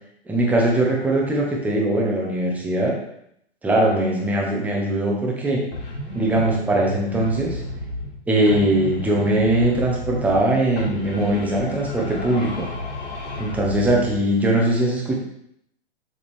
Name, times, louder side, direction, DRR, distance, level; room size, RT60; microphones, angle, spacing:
voice 1, 0.3-3.0 3.6-5.6 6.1-7.6 8.3-12.7 13.4-15.1, right 1 dB, 5° right, -2 dB, 1.0 m, -21 dB
sound 1, 5.7-8.2 8.5-10.5 10.8-14.2, left 1 dB, 80° left, 3.0 m, -32 dB
7.0 x 5.2 x 3.5 m, 0.73 s
hypercardioid pair, 150°, 33 cm